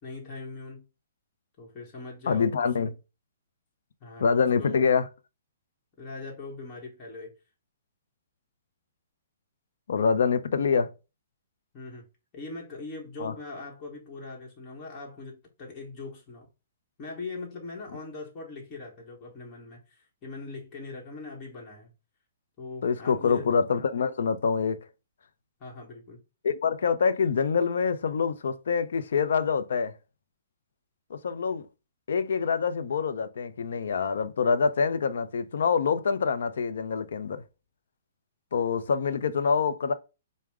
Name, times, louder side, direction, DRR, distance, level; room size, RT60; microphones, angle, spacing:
voice 1, 0.0-0.9 1.6-2.7 4.0-4.8 6.0-7.3 11.7-12.1 12.3-16.5 17.0-21.9 22.6-23.5 25.6-26.2, left 3 dB, 25° left, 1.2 m, -41 dB
voice 2, 2.3-2.9 4.2-5.1 9.9-10.9 13.2-13.3 22.8-24.8 26.4-29.9 31.1-31.7 32.1-37.4 38.5-39.9, left 5 dB, 75° left, 0.5 m, -25 dB
4.8 x 2.1 x 3.5 m
hypercardioid pair, 155°, 0 cm